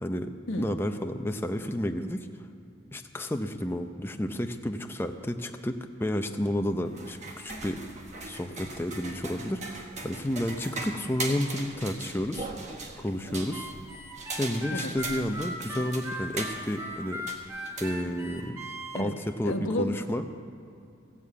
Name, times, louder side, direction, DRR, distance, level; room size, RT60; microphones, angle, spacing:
voice 1, 0.0-0.3 0.6-2.3 2.9-7.8 8.3-12.5 13.0-13.7 14.4-17.2 17.8-20.2, left 1 dB, 10° left, 6 dB, 0.6 m, -31 dB
sound 1, 6.8-18.5, right 2 dB, 35° right, 1.2 m, -39 dB
Harmonica, 13.5-19.0, left 1 dB, 15° right, 1.0 m, -38 dB
voice 2, 19.4-20.0, left 1 dB, 75° left, 5 dB, 1.1 m, -31 dB
15.5 x 7.1 x 8.4 m, 2.6 s
head